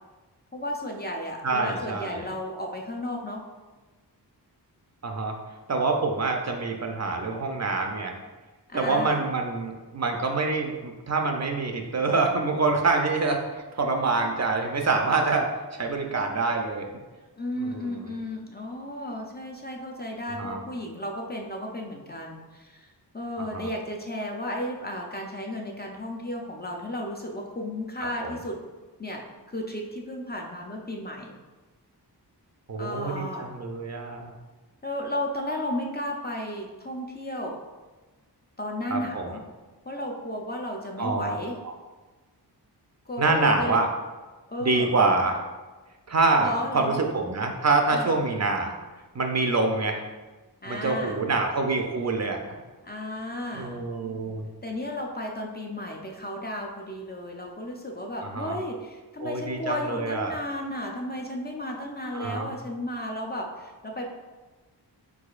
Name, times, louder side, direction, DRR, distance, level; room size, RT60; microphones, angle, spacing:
voice 1, 0.5-3.4 8.7-9.2 17.4-28.6 29.0-31.3 32.8-33.5 34.8-37.6 38.6-39.4 39.9-41.6 43.1-43.8 44.5-44.9 46.4-47.0 47.9-48.2 50.6-51.2 52.8-53.8 54.6-64.1, left 1 dB, 25° left, 0 dB, 0.4 m, -34 dB
voice 2, 1.4-2.3 5.0-5.3 5.7-8.1 8.7-16.9 17.6-18.1 20.4-20.6 23.4-23.7 28.2-28.3 32.7-34.4 38.9-39.3 41.0-41.4 43.2-43.9 44.6-45.4 46.1-48.7 49.1-50.0 50.7-52.5 53.5-54.5 58.2-58.6 59.2-60.4 62.1-62.5, right 3 dB, 40° right, 3 dB, 0.4 m, -26 dB
4.7 x 4.1 x 2.4 m, 1.2 s
wide cardioid pair, 125°, 41 cm